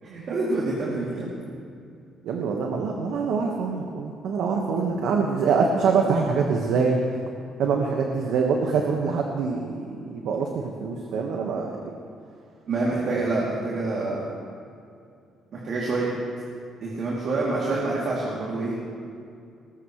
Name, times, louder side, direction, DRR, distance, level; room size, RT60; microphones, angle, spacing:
voice 1, 0.0-1.3 4.7-4.8 12.7-14.3 15.5-16.1 16.8-18.8, right 2 dB, 45° right, -6 dB, 2.9 m, -27 dB
voice 2, 2.2-7.0 7.6-11.9 13.1-13.2, right 5 dB, 70° right, 1 dB, 1.5 m, -25 dB
21.5 x 20.0 x 3.3 m, 2.4 s
cardioid pair, 175°, 0 cm